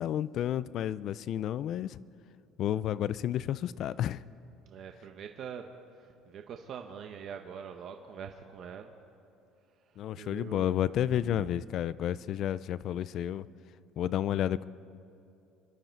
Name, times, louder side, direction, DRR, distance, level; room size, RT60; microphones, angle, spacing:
voice 1, 0.0-2.0 2.6-4.2 10.0-13.5 14.0-14.7, left 11 dB, 45° left, 18 dB, 0.3 m, -31 dB
voice 2, 4.6-8.9 9.8-10.7 11.1-11.6, right 7 dB, 40° right, 5 dB, 0.8 m, -44 dB
26.5 x 11.5 x 4.5 m, 2.7 s
cardioid pair, 165°, 0 cm